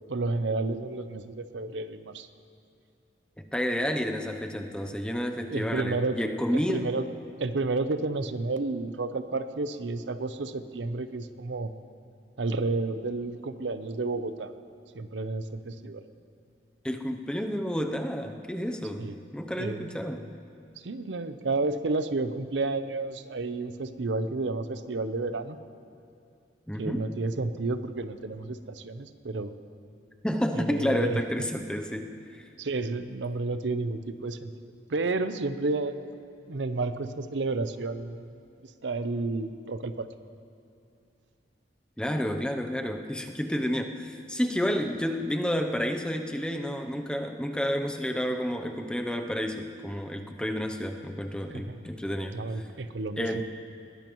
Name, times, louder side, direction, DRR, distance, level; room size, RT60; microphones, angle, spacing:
voice 1, 0.1-2.3 5.5-6.2 6.5-7.1 7.4-11.7 12.4-14.5 14.9-16.0 19.0-19.2 19.6-20.0 20.8-25.6 26.8-29.5 30.5-31.5 32.6-35.9 36.5-38.3 38.8-40.1 51.5-51.8 52.3-53.4, right 3 dB, 85° right, 11 dB, 0.6 m, -31 dB
voice 2, 3.4-6.9 16.8-19.1 19.3-20.3 26.7-27.1 30.2-32.5 42.0-52.6 53.2-53.4, equal, 5° left, 5 dB, 0.6 m, -30 dB
21.0 x 16.0 x 3.1 m, 2.6 s
head